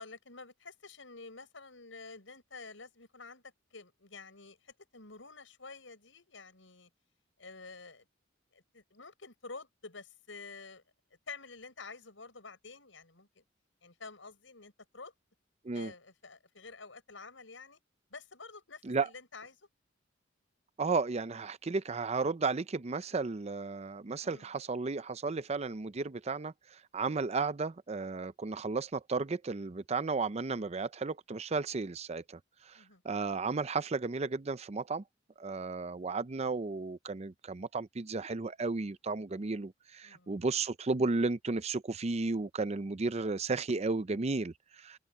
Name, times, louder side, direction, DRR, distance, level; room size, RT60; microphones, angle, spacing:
voice 1, 0.0-6.9 7.4-8.0 8.5-10.8 11.3-13.4 13.8-15.1 15.7-17.8 18.1-19.6 24.2-24.5 32.7-33.0 40.0-40.4, left 4 dB, 85° left, 6.0 m, -49 dB
voice 2, 20.8-32.4 32.7-35.0 35.4-45.0, right 3 dB, 35° right, 0.6 m, -34 dB
open air
head